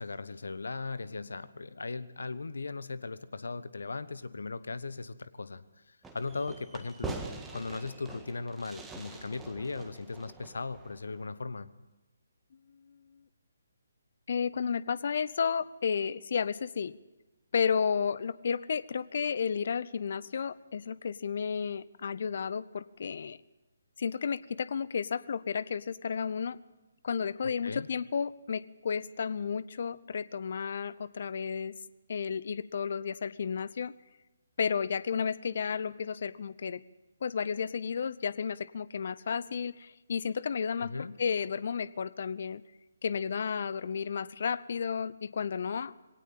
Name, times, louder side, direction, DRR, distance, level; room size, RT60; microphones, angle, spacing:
voice 1, 0.0-11.7 27.6-27.9 40.8-41.1, left 3 dB, 65° left, 16 dB, 1.0 m, -38 dB
Fireworks, 6.0-11.3, right 4 dB, 5° right, 1.7 m, -44 dB
voice 2, 14.3-16.9 17.5-23.4 24.0-26.6 27.0-31.7 32.1-33.9 34.6-36.8 37.2-42.6 43.0-45.9, left 6 dB, 50° left, 19 dB, 0.7 m, -32 dB
20.5 x 18.0 x 7.5 m, 1.1 s
figure-of-eight pair, 140°, 0 cm